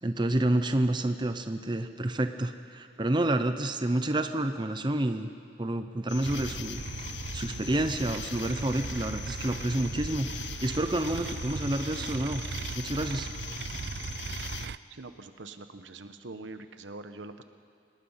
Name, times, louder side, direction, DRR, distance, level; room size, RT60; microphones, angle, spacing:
voice 1, 0.0-5.3 5.6-6.8 7.3-10.3 10.6-12.4 12.7-13.3, right 1 dB, 25° right, 8 dB, 0.7 m, -29 dB
sound 1, 6.1-14.7, left 9 dB, 70° left, 0.6 m, -42 dB
sound 2, 6.2-14.8, right 4 dB, 60° right, 0.5 m, -38 dB
voice 2, 14.9-17.4, right 3 dB, 85° right, 9 dB, 1.1 m, -44 dB
26.5 x 19.5 x 5.8 m, 2.3 s
head